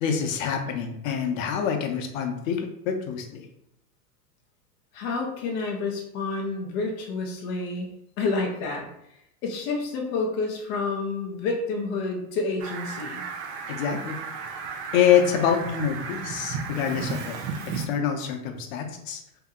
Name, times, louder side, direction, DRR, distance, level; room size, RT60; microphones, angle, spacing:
voice 1, 0.0-3.5 13.7-14.2 14.9-17.4 17.7-19.2, left 8 dB, 55° left, 4 dB, 0.8 m, -26 dB
voice 2, 4.9-7.9 8.2-8.9 9.4-13.2, left 3 dB, 25° left, 0 dB, 0.4 m, -29 dB
Fowl, 12.6-17.9, right 5 dB, 45° right, 0.5 m, -34 dB
2.9 x 2.8 x 3.6 m, 0.77 s
supercardioid pair, 155°, 48 cm